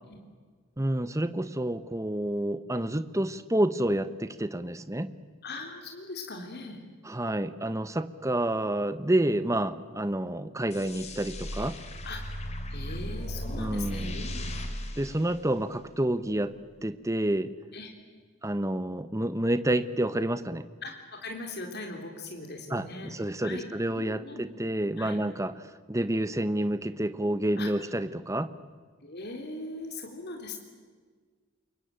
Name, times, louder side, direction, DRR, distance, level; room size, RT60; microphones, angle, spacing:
voice 1, 0.8-5.1 7.1-11.8 13.5-14.2 15.0-16.5 16.8-17.5 18.4-20.7 22.7-25.5 25.9-28.5, right 1 dB, 15° right, 12 dB, 1.0 m, -29 dB
voice 2, 5.4-6.8 12.0-12.2 12.7-14.5 17.7-17.9 20.8-23.1 23.4-23.7 23.9-24.4 25.0-25.2 27.6-27.7 29.0-30.6, left 2 dB, 50° left, 2 dB, 3.6 m, -40 dB
sound 1, 10.7-16.0, equal, 30° left, 2.8 m, -36 dB
28.0 x 23.0 x 9.1 m, 1.5 s
head